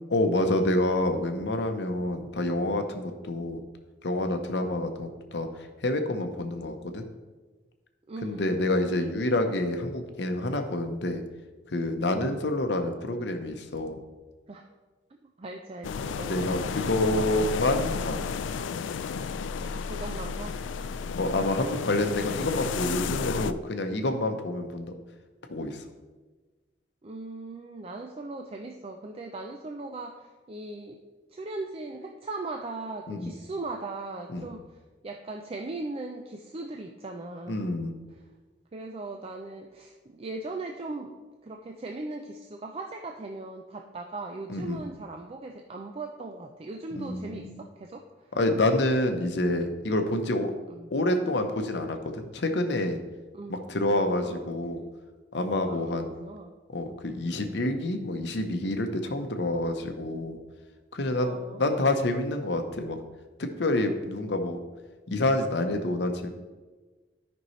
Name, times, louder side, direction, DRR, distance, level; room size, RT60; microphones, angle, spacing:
voice 1, 0.1-3.6 4.0-5.5 5.8-7.0 8.2-11.2 11.7-14.0 16.3-18.2 21.2-24.9 25.5-25.8 33.1-33.3 34.3-34.5 37.5-37.9 44.5-44.8 47.0-47.6 48.3-50.5 50.9-53.0 53.5-54.8 55.3-56.1 56.7-60.4 60.9-63.0 63.4-64.6 65.1-66.3, left 1 dB, 65° left, 6 dB, 0.8 m, -28 dB
voice 2, 8.1-8.9 12.2-12.4 14.5-14.7 15.2-16.7 19.6-20.6 21.7-22.1 27.0-31.0 31.3-37.6 38.1-38.2 38.7-41.1 41.4-48.3 50.7-50.9 53.3-53.6 54.1-54.6 55.7-56.5 61.2-61.7, right 2 dB, 30° right, 3 dB, 0.4 m, -39 dB
sound 1, 15.8-23.5, left 5 dB, 90° left, 0.3 m, -32 dB
12.5 x 5.3 x 3.1 m, 1.3 s
head